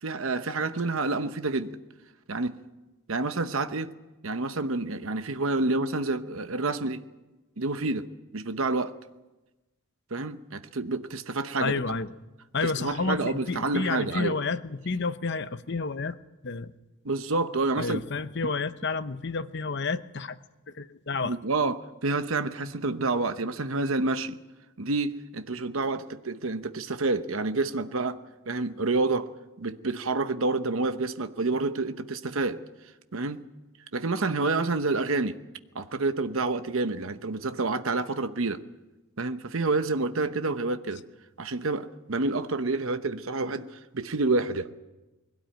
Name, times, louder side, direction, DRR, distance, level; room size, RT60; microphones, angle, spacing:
voice 1, 0.0-1.7 2.3-2.6 3.1-3.9 4.2-7.0 7.6-8.1 8.3-8.9 10.1-11.7 12.6-14.4 17.0-18.0 21.2-24.4 24.8-29.3 29.6-32.6 33.1-33.4 33.9-35.4 35.7-38.6 39.2-41.0 41.4-44.7, right 3 dB, 70° right, 0.9 m, -28 dB
voice 2, 11.6-12.1 12.5-16.2 16.4-16.7 17.8-20.4 20.7-21.4, left 4 dB, 55° left, 0.8 m, -30 dB
21.0 x 17.0 x 9.2 m
head